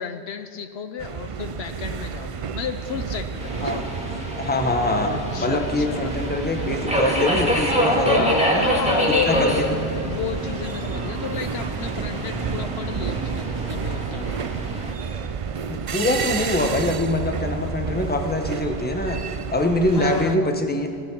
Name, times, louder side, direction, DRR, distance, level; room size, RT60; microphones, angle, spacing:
voice 1, 0.0-3.9 5.0-6.2 8.1-14.3 19.9-20.5, left 7 dB, 70° left, 9 dB, 0.9 m, -32 dB
sound 1, 1.0-20.4, right 6 dB, 50° right, 0.4 m, -31 dB
Subway metro underground, 3.4-14.9, equal, 5° right, 1.9 m, -26 dB
voice 2, 3.6-3.9 4.4-8.7 9.1-9.8 15.7-19.2 19.5-20.9, left 2 dB, 10° left, 4 dB, 0.9 m, -24 dB
16.5 x 10.5 x 6.0 m, 2.6 s
omnidirectional pair, 1.1 m